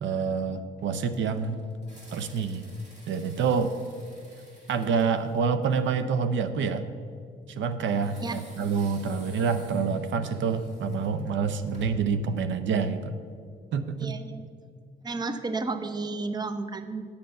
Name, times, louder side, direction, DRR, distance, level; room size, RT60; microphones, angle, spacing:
voice 1, 0.0-1.6 2.1-2.6 3.1-3.7 4.7-6.8 7.5-13.2 13.7-14.2, right 5 dB, 70° right, 10 dB, 0.6 m, -27 dB
sound 1, 0.8-6.2 7.9-12.2, equal, 35° right, 2.5 m, -52 dB
voice 2, 14.0-14.4 15.0-17.1, right 3 dB, 20° right, 10 dB, 0.6 m, -32 dB
7.7 x 6.8 x 6.6 m, 2.2 s
cardioid pair, 90°, 20 cm